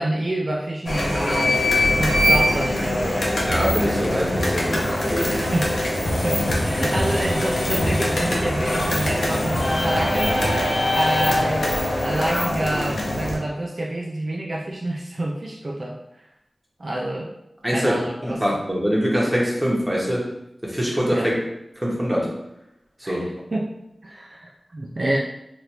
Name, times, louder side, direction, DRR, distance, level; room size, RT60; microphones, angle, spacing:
voice 1, 0.0-3.3 5.1-5.8 6.2-10.4 10.9-16.2 16.8-17.3 17.7-18.4 21.1-21.3 23.0-23.2 23.5-23.7 24.0-25.2, right 1 dB, 50° right, -2 dB, 0.3 m, -28 dB
sound 1, 0.9-13.4, left 1 dB, 90° left, 0.6 m, -22 dB
voice 2, 3.5-5.4 17.6-17.9 18.2-20.3 20.6-21.3 21.8-22.4 23.0-23.3, equal, 10° right, -4 dB, 1.0 m, -23 dB
3.3 x 2.5 x 2.8 m, 0.83 s
wide cardioid pair, 75°, 0 cm